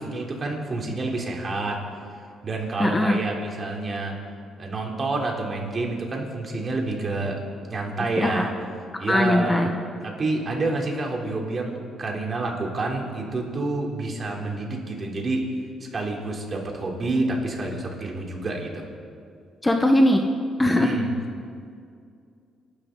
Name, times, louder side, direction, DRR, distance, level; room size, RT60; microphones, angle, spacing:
voice 1, 0.0-1.8 2.4-4.1 4.6-7.4 7.7-8.5 9.0-9.7 10.0-15.4 15.9-18.9 20.6-21.1, right 2 dB, 40° right, 0 dB, 3.5 m, -28 dB
voice 2, 2.8-3.2 8.2-8.5 9.1-9.7 19.6-20.3 20.6-21.0, left 1 dB, 15° left, 4 dB, 1.2 m, -20 dB
29.0 x 12.0 x 4.0 m, 2.3 s
cardioid pair, 90°, 0 cm